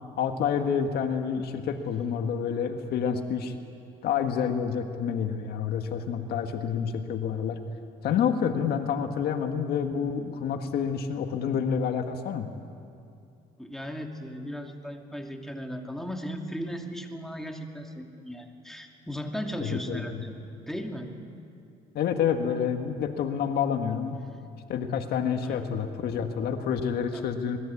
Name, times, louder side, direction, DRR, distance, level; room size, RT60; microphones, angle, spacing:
voice 1, 0.2-3.5 4.0-7.6 8.0-12.5 19.6-20.2 21.9-24.2 24.7-27.6, left 7 dB, 70° left, 6 dB, 1.7 m, -28 dB
voice 2, 13.6-20.3 20.7-21.1 25.4-25.7 27.1-27.2, equal, ahead, 2 dB, 2.6 m, -36 dB
26.0 x 20.5 x 8.5 m, 2.5 s
cardioid pair, 110°, 17 cm